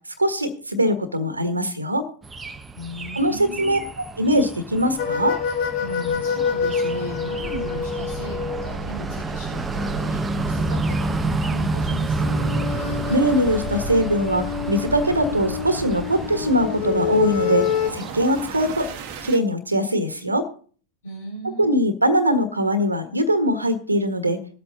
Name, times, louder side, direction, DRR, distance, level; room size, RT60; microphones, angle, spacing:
voice 1, 0.2-2.1 3.1-5.4 13.1-17.7 17.9-18.9 19.2-20.5 21.6-24.4, equal, 80° right, 10 dB, 1.5 m, -21 dB
sound 1, 2.2-19.3, right 2 dB, 15° right, 0.8 m, -30 dB
voice 2, 2.8-3.9 5.5-12.5 21.0-21.8, left 1 dB, 70° left, -4 dB, 5.0 m, -37 dB
sound 2, 5.0-8.9 12.2-17.9, left 7 dB, 45° left, 1.4 m, -27 dB
sound 3, 7.3-19.4, right 5 dB, 45° right, 1.2 m, -35 dB
19.0 x 8.0 x 3.9 m, 0.42 s
figure-of-eight pair, 90°, 0 cm